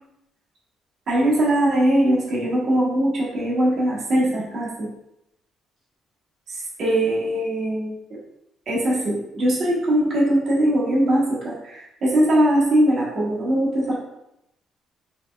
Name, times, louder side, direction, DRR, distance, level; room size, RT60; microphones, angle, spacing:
voice 1, 1.1-4.9 6.5-8.2 8.7-14.0, right 1 dB, 40° right, -6 dB, 1.3 m, -21 dB
4.6 x 4.1 x 2.4 m, 0.83 s
cardioid pair, 175°, 0 cm